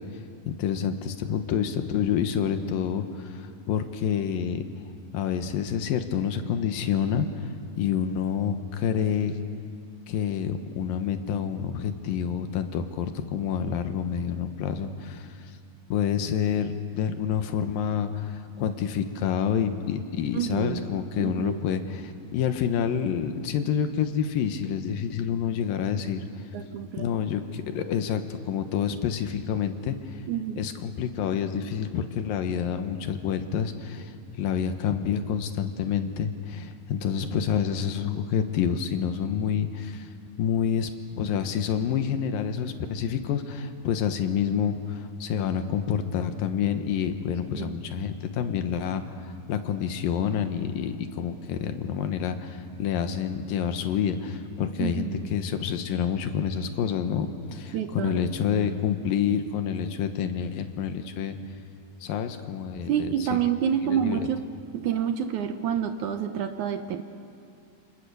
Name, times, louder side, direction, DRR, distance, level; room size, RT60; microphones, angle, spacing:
voice 1, 0.5-4.6 5.1-7.5 7.8-9.4 10.1-15.5 15.9-26.2 27.0-30.2 30.6-40.1 40.4-40.9 41.2-61.4 62.0-63.4 63.8-64.2, left 8 dB, 85° left, 8 dB, 3.0 m, -28 dB
voice 2, 20.3-20.9 21.2-21.6 26.5-27.1 30.3-30.6 47.5-47.8 54.8-55.3 57.7-58.3 58.5-58.8 62.9-64.4 64.7-67.0, right 9 dB, 70° right, 8 dB, 2.1 m, -28 dB
28.0 x 28.0 x 6.9 m, 2.3 s
omnidirectional pair, 4.0 m